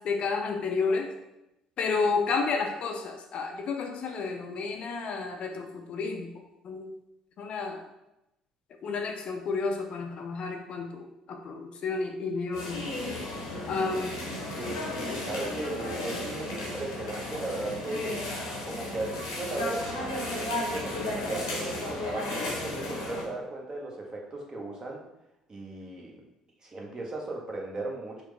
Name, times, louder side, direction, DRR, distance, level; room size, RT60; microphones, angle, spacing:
voice 1, 0.0-1.1 1.8-6.3 6.6-6.9 7.4-7.8 8.8-12.8 13.7-14.2 15.1-15.2, left 4 dB, 50° left, 4 dB, 0.4 m, -31 dB
sound 1, 12.5-23.2, left 1 dB, 80° left, 0.8 m, -34 dB
voice 2, 14.5-18.1 18.6-25.0 25.5-26.2 26.6-28.2, right 2 dB, 30° right, -2 dB, 1.0 m, -37 dB
4.7 x 2.0 x 3.3 m, 0.89 s
figure-of-eight pair, 55°, 2 cm